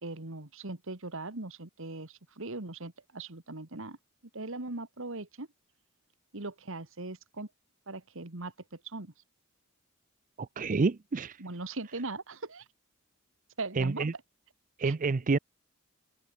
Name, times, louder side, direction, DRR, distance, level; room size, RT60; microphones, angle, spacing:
voice 1, 0.0-4.0 4.3-5.5 6.3-7.5 7.9-8.5 8.8-9.1 11.4-12.6 13.6-14.1 14.8-14.9, right 2 dB, 70° right, 2.2 m, -39 dB
voice 2, 10.4-11.4 13.8-14.1 14.8-15.4, right 4 dB, 40° right, 0.5 m, -28 dB
head